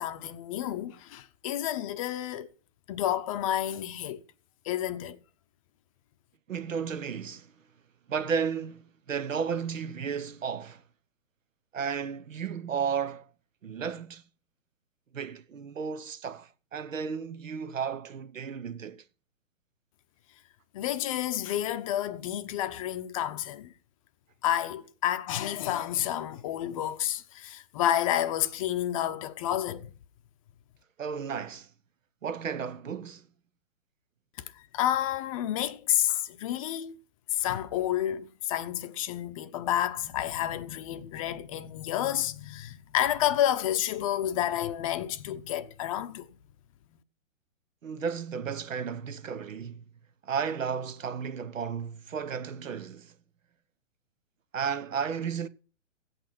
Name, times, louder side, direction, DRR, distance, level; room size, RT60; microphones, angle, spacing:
voice 1, 0.0-2.5 2.9-4.2 4.6-5.2 20.7-23.7 24.4-29.9 34.5-37.0 37.3-46.4, left 12 dB, 25° left, 0.7 m, -30 dB
voice 2, 6.5-7.5 8.1-10.8 11.7-13.3 13.6-14.2 15.1-19.0 31.0-31.7 32.2-33.3 47.8-49.8 50.2-53.1 54.5-55.5, right 6 dB, 75° right, 1.2 m, -33 dB
16.0 x 8.5 x 5.9 m
hypercardioid pair, 140°, 39 cm